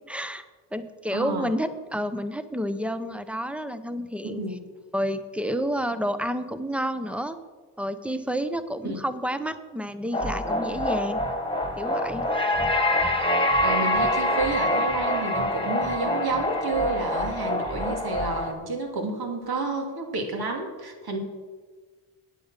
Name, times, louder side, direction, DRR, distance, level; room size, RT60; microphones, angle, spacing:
voice 1, 0.1-0.4 0.7-4.4 4.9-7.4 7.8-11.2 11.8-12.2, equal, 5° right, 11 dB, 0.9 m, -30 dB
voice 2, 1.1-1.5 4.2-4.6 8.8-9.0 13.6-21.2, right 3 dB, 60° right, 3 dB, 2.6 m, -30 dB
sound 1, 10.1-18.5, left 1 dB, 10° left, 1.7 m, -25 dB
9.6 x 8.5 x 7.5 m, 1.4 s
cardioid pair, 80°, 42 cm